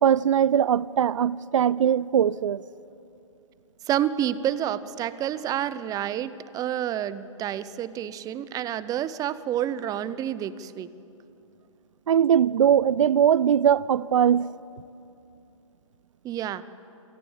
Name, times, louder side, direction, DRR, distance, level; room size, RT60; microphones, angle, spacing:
voice 1, 0.0-2.6 12.1-14.5, right 9 dB, 70° right, 0.5 m, -21 dB
voice 2, 3.9-10.9 16.2-16.6, right 11 dB, 20° right, 0.8 m, -29 dB
27.0 x 17.5 x 8.7 m
figure-of-eight pair, 120°, 17 cm